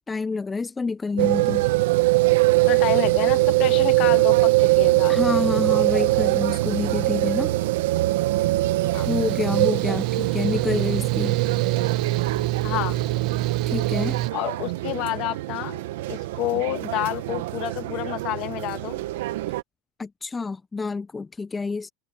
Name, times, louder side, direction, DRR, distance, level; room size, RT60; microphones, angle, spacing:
voice 1, 0.1-1.7 5.1-7.5 8.8-11.4 13.7-14.2 20.0-21.9, left 4 dB, 15° left, 0.3 m, -28 dB
sound 1, 1.2-19.6, right 20 dB, 85° right, 0.9 m, -23 dB
voice 2, 2.7-5.2 8.9-9.1 12.6-13.0 14.3-15.8 16.1-19.0, left 17 dB, 55° left, 1.5 m, -29 dB
Mechanical fan, 8.9-14.3, right 17 dB, 55° right, 0.5 m, -27 dB
supercardioid pair, 125°, 0 cm